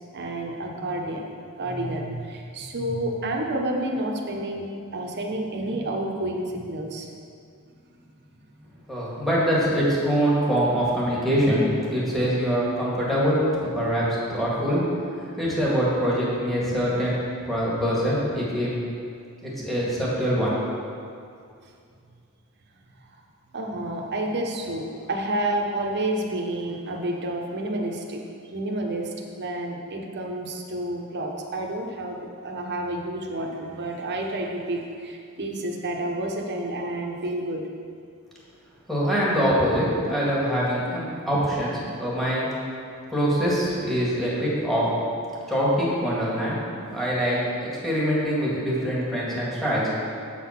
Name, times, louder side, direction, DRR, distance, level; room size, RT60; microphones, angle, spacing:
voice 1, 0.1-1.2 1.6-4.6 4.9-7.1 23.0-23.1 23.5-37.6, right 1 dB, 50° right, 0 dB, 1.0 m, -30 dB
voice 2, 8.9-14.8 15.2-17.2 17.4-18.8 19.4-20.6 38.9-42.5 43.1-44.9 45.5-46.6 46.9-49.8, equal, ahead, -7 dB, 2.0 m, -24 dB
8.3 x 5.9 x 5.9 m, 2.3 s
head